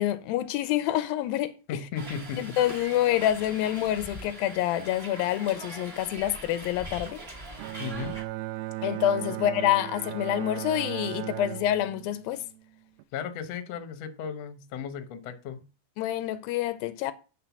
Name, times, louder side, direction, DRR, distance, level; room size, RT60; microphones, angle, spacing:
voice 1, 0.0-1.5 2.4-7.2 8.8-12.4 16.0-17.1, left 12 dB, 85° left, 2.4 m, -27 dB
voice 2, 1.7-2.4 7.8-8.2 13.1-15.6, left 7 dB, 65° left, 1.7 m, -35 dB
Hiss, 1.9-8.2, right 2 dB, 20° right, 2.1 m, -42 dB
Bowed string instrument, 7.6-13.0, right 17 dB, 85° right, 2.4 m, -37 dB
8.7 x 4.4 x 7.0 m
omnidirectional pair, 4.2 m